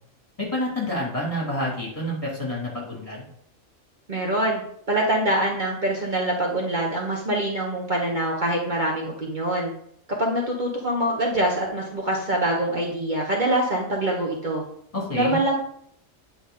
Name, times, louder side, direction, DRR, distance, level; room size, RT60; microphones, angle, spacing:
voice 1, 0.4-3.3 14.9-15.4, left 1 dB, 25° left, -3 dB, 2.8 m, -28 dB
voice 2, 4.1-4.6 4.9-9.7 10.2-14.6 15.1-15.5, right 1 dB, 40° right, -2 dB, 1.3 m, -24 dB
9.5 x 5.4 x 3.8 m, 0.67 s
omnidirectional pair, 1.3 m